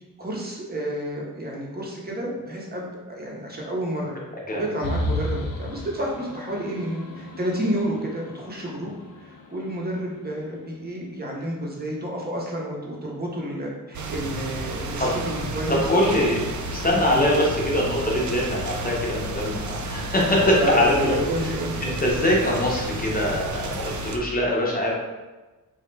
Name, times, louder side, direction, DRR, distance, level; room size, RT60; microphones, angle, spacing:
voice 1, 0.2-4.1 4.5-16.1 16.9-17.3 20.6-21.9, right 1 dB, 25° right, -3 dB, 0.8 m, -30 dB
sound 1, 4.8-10.4, left 1 dB, 80° left, 0.5 m, -33 dB
sound 2, 13.9-24.2, right 2 dB, 55° right, 0.4 m, -31 dB
voice 2, 15.7-16.4 16.7-21.2 21.8-24.9, left 1 dB, 25° left, -3 dB, 0.8 m, -23 dB
3.0 x 2.3 x 3.1 m, 1.2 s
cardioid pair, 80°, 35 cm